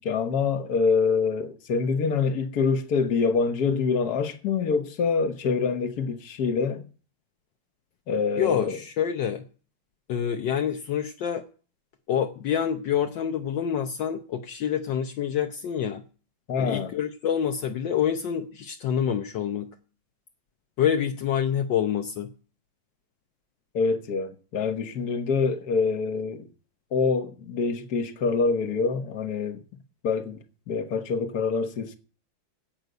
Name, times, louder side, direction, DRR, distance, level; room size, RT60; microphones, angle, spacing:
voice 1, 0.0-6.8 8.1-8.8 16.5-16.9 23.7-26.5 26.9-29.6 30.0-32.0, left 5 dB, 55° left, 1.7 m, -25 dB
voice 2, 8.4-9.4 10.1-11.4 12.1-16.0 16.6-19.8 20.8-22.3, left 8 dB, 70° left, 1.5 m, -27 dB
10.5 x 8.0 x 8.0 m
omnidirectional pair, 2.1 m